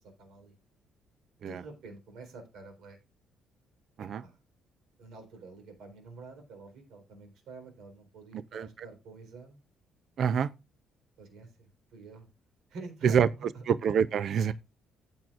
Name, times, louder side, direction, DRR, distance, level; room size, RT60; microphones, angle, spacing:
voice 1, 0.2-0.5 1.4-3.0 4.0-4.4 5.0-9.6 11.2-12.3 12.7-13.6, right 3 dB, 70° right, 4.0 m, -48 dB
voice 2, 8.5-8.9 10.2-10.5 13.0-13.3 13.7-14.5, right 7 dB, 50° right, 0.4 m, -26 dB
15.0 x 6.1 x 2.5 m
cardioid pair, 160°, 0 cm